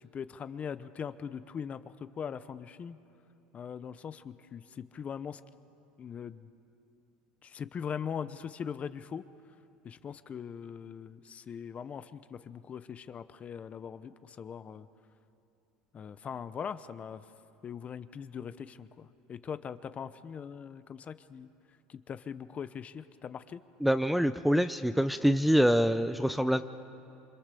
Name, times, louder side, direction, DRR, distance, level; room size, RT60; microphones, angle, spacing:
voice 1, 0.1-3.0 3.5-5.4 6.0-6.5 7.4-9.2 9.8-14.9 15.9-17.2 17.6-21.5 21.9-23.6, left 7 dB, 30° left, 13 dB, 0.8 m, -41 dB
voice 2, 23.8-26.6, equal, ahead, 11 dB, 0.6 m, -25 dB
27.5 x 25.0 x 6.9 m, 2.9 s
supercardioid pair, 115°, 4 cm